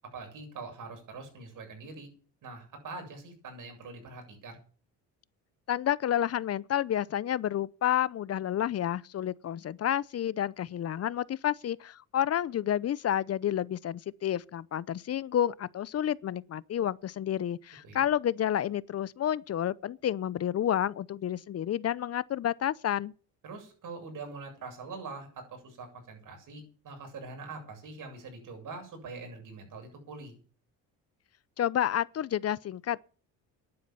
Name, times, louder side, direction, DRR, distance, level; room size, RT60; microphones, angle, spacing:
voice 1, 0.1-2.1 2.4-4.6 17.8-18.0 23.4-30.4, right 3 dB, 60° right, 7.7 m, -44 dB
voice 2, 5.7-23.1 31.6-33.0, left 10 dB, 45° left, 0.7 m, -30 dB
11.0 x 9.6 x 8.7 m
cardioid pair, 95°, 36 cm